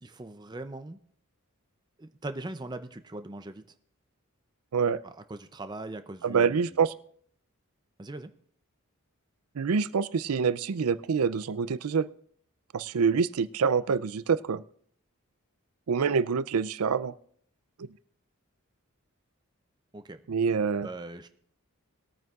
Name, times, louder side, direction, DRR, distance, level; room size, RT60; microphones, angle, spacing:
voice 1, 0.0-1.0 2.0-3.6 5.0-6.8 8.0-8.3 19.9-20.2 20.8-21.3, right 2 dB, 20° right, 9 dB, 0.5 m, -40 dB
voice 2, 6.2-6.9 9.6-12.1 12.7-14.6 15.9-17.2 20.3-20.9, right 6 dB, 90° right, 17 dB, 0.5 m, -26 dB
20.5 x 9.1 x 2.4 m, 0.62 s
head